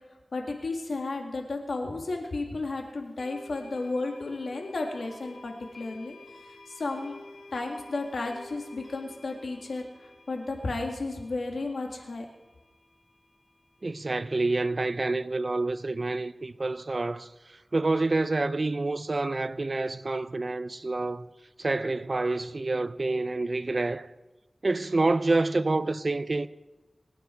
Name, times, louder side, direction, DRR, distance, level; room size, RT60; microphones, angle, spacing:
voice 1, 0.3-6.2 6.5-7.2 7.5-12.3, left 3 dB, 90° left, 2.1 m, -33 dB
sound 1, 2.2-2.3 3.2-14.2, left 2 dB, 60° left, 2.3 m, -51 dB
voice 2, 13.8-21.3 21.6-24.1 24.6-26.5, right 2 dB, 50° right, 0.5 m, -28 dB
25.0 x 9.4 x 4.6 m
wide cardioid pair, 80°, 0 cm